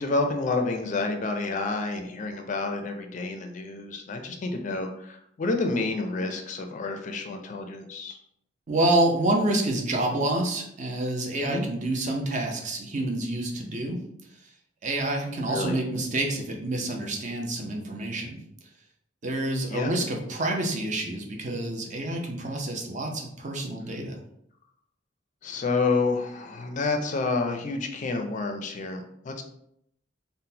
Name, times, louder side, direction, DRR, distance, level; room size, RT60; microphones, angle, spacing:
voice 1, 0.0-8.2 11.4-11.6 15.4-15.8 19.7-19.9 25.4-29.4, left 3 dB, 40° left, 5 dB, 0.4 m, -29 dB
voice 2, 8.7-14.0 14.8-18.4 19.2-24.1, right 1 dB, 40° right, 1 dB, 0.5 m, -28 dB
3.7 x 2.1 x 2.7 m, 0.72 s
head